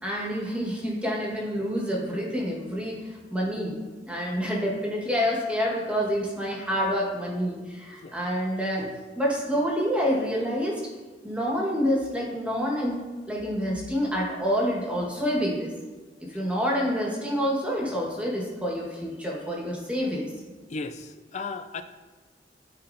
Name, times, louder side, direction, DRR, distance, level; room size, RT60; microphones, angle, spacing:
voice 1, 0.0-3.8 4.0-8.9 9.1-10.8 11.2-13.0 13.3-15.7 16.3-20.3, equal, 5° right, -3 dB, 1.4 m, -27 dB
voice 2, 20.7-21.8, left 4 dB, 40° left, 10 dB, 0.4 m, -35 dB
12.0 x 4.3 x 2.6 m, 1.3 s
head